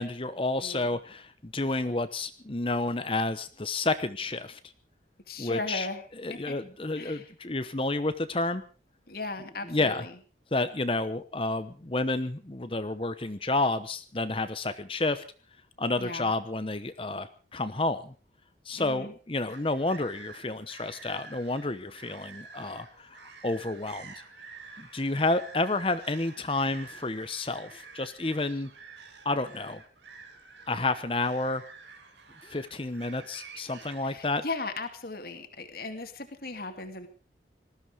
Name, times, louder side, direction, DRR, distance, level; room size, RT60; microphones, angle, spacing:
voice 1, 0.0-4.6 5.4-5.9 6.2-8.6 9.7-10.0 10.5-15.2 15.8-18.1 18.7-24.1 24.8-28.7 29.2-29.8 30.7-31.6 32.4-34.4, left 2 dB, 30° left, 12 dB, 0.9 m, -30 dB
voice 2, 0.6-1.0 5.3-6.6 7.0-7.3 9.1-10.1 16.0-16.3 18.8-19.1 34.0-37.1, left 3 dB, 55° left, 6 dB, 2.4 m, -37 dB
sound 1, 19.5-34.0, right 4 dB, 75° right, 2.8 m, -49 dB
20.0 x 14.5 x 5.1 m, 0.39 s
head